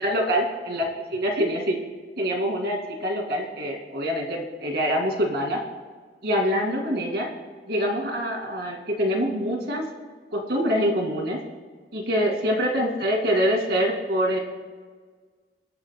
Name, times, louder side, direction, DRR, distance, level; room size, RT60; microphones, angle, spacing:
voice 1, 0.0-1.8 2.2-5.6 6.2-7.3 7.7-9.9 10.3-11.4 11.9-14.4, equal, 65° right, 1 dB, 2.3 m, -25 dB
26.0 x 9.8 x 2.2 m, 1.5 s
head